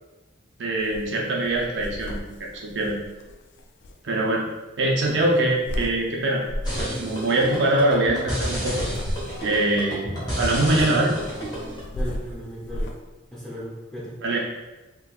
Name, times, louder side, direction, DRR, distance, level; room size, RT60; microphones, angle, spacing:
voice 1, 0.6-3.0 4.0-4.4 4.8-6.4 6.8-8.8 9.4-11.2 14.2-14.4, right 1 dB, 60° right, -2 dB, 0.6 m, -23 dB
sound 1, 0.8-1.1 1.4-3.9 5.1-6.0 6.4-6.9 8.5-9.6 11.2-13.0, equal, 60° left, 0.3 m, -33 dB
voice 2, 4.8-5.2 11.9-12.9 13.3-14.1, equal, 5° left, -7 dB, 0.7 m, -36 dB
sound 2, 6.6-11.8, equal, 20° left, 1.0 m, -30 dB
3.5 x 2.9 x 2.3 m, 1.1 s
head